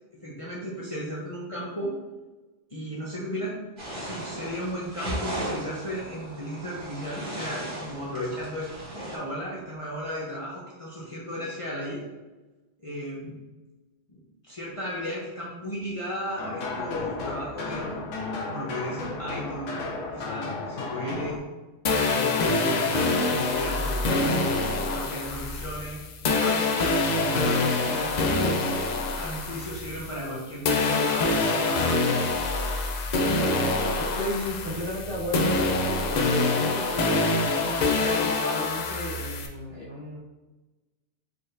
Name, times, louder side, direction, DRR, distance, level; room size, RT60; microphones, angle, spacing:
voice 1, 0.2-1.9 2.7-3.6 3.9-8.7 9.1-12.0 12.8-13.4 14.1-18.0 18.4-19.8 20.1-21.4 22.0-24.6 24.8-26.0 26.3-28.3 29.2-32.2, equal, 30° left, -6 dB, 0.8 m, -35 dB
sound 1, 3.8-9.2, equal, 35° right, 1.8 m, -36 dB
sound 2, 16.4-21.4, left 3 dB, 80° left, 1.0 m, -34 dB
sound 3, 21.9-30.4 30.7-39.5, left 3 dB, 65° left, 0.4 m, -25 dB
voice 2, 34.0-35.5 36.1-40.2, left 1 dB, 65° right, -9 dB, 1.7 m, -33 dB
4.7 x 4.0 x 2.5 m, 1.2 s
omnidirectional pair, 1.3 m